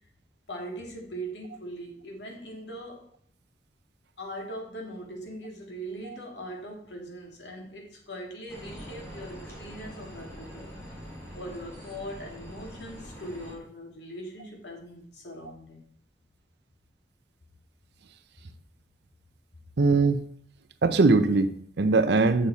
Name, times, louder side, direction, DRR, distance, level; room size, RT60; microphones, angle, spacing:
voice 1, 0.5-3.1 4.2-10.7 11.3-15.8, right 1 dB, 75° left, 1 dB, 2.0 m, -40 dB
sound 1, 8.5-13.5, equal, 15° left, 3.7 m, -44 dB
voice 2, 19.8-20.2 20.8-22.5, right 3 dB, 70° right, 11 dB, 0.6 m, -21 dB
7.1 x 6.6 x 4.0 m, 0.62 s
head